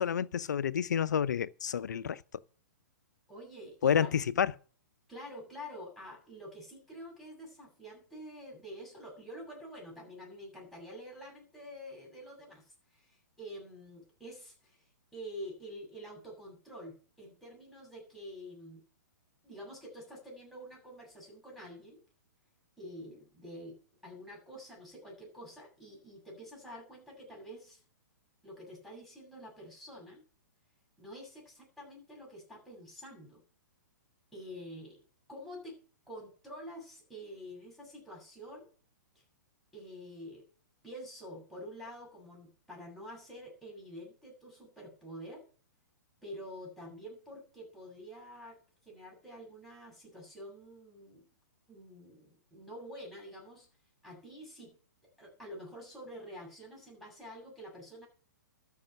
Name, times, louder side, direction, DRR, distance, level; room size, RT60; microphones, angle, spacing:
voice 1, 0.0-2.2 3.8-4.5, left 8 dB, 70° left, 0.7 m, -29 dB
voice 2, 3.3-4.1 5.1-14.8 15.1-18.8 19.4-22.0 22.8-27.8 28.4-30.2 31.0-33.4 34.3-35.0 35.3-35.8 36.1-38.7 39.7-40.4 40.8-45.4 46.2-48.6 48.8-51.3 51.7-53.7 54.0-54.7 55.2-58.1, equal, ahead, 7.3 m, -47 dB
13.0 x 5.7 x 8.5 m
figure-of-eight pair, 120°, 10 cm